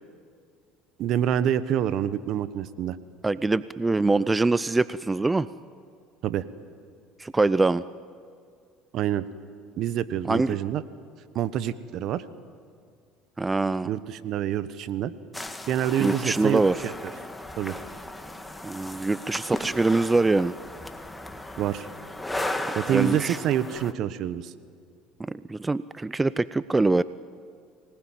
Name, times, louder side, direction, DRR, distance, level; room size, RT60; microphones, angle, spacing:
voice 1, 1.0-3.0 6.2-6.4 8.9-9.3 9.8-10.8 11.3-12.2 13.8-15.1 15.7-16.9 17.6-17.8 21.6-21.9 22.8-24.5, right 10 dB, 60° right, 14 dB, 1.1 m, -27 dB
voice 2, 3.2-5.5 7.2-7.8 10.3-10.6 13.4-13.9 16.0-16.9 18.6-20.5 22.9-23.4 25.2-27.0, right 3 dB, 15° right, 17 dB, 0.5 m, -24 dB
sound 1, 15.3-23.9, left 1 dB, 10° left, 1.9 m, -36 dB
25.0 x 19.5 x 9.1 m, 2.2 s
hypercardioid pair, 75°, 0 cm